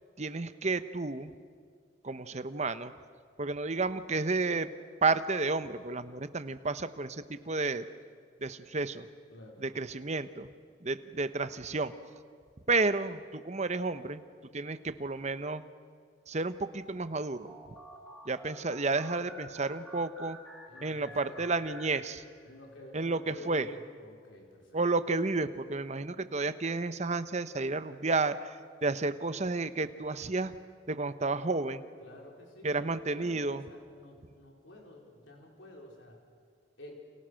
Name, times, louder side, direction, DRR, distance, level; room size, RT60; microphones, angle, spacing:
voice 1, 0.2-1.3 2.0-2.9 3.4-4.7 5.0-7.8 8.4-9.1 9.8-10.5 10.8-11.9 12.7-14.2 14.5-15.6 16.3-17.5 18.3-20.4 20.8-22.2 22.9-23.7 24.7-30.5 30.9-31.8 32.6-33.6, right 3 dB, 35° right, 12 dB, 0.9 m, -31 dB
voice 2, 9.3-9.6 20.7-21.5 22.4-24.8 32.0-36.2 36.8-37.0, left 1 dB, 70° left, 0 dB, 4.7 m, -50 dB
sound 1, 17.5-22.6, equal, ahead, 3.1 m, -50 dB
29.5 x 28.5 x 6.5 m, 2.1 s
head